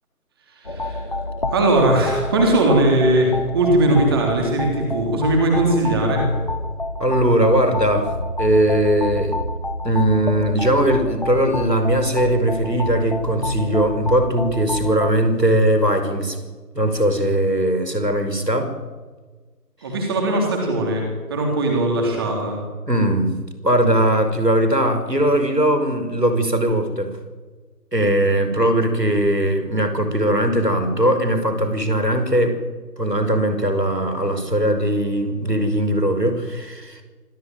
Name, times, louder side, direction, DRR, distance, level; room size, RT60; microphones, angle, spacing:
sound 1, 0.6-15.1, left 2 dB, 30° left, 1.1 m, -28 dB
voice 1, 0.6-1.0 1.5-6.3 19.8-21.0 21.3-22.6, right 1 dB, 15° right, 1 dB, 3.5 m, -19 dB
voice 2, 7.0-9.4 9.8-16.4 16.8-18.8 22.9-23.4 23.6-27.1 27.9-32.6 33.0-37.0, right 1 dB, 90° right, 7 dB, 5.5 m, -19 dB
25.0 x 15.0 x 9.3 m, 1.4 s
figure-of-eight pair, 160°, 47 cm